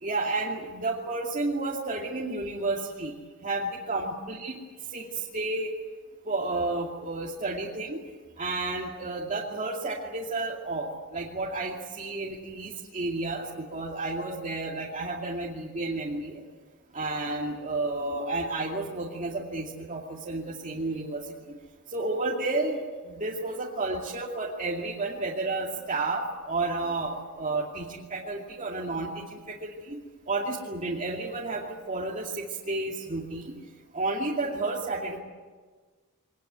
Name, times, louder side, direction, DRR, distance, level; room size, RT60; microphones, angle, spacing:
voice 1, 0.0-3.1 3.4-4.6 4.9-5.7 6.3-8.0 8.4-16.4 16.9-21.2 21.5-21.6 21.9-30.0 30.3-33.6 33.9-35.2, right 2 dB, 35° right, -3 dB, 2.5 m, -31 dB
24.0 x 19.0 x 9.3 m, 1.5 s
head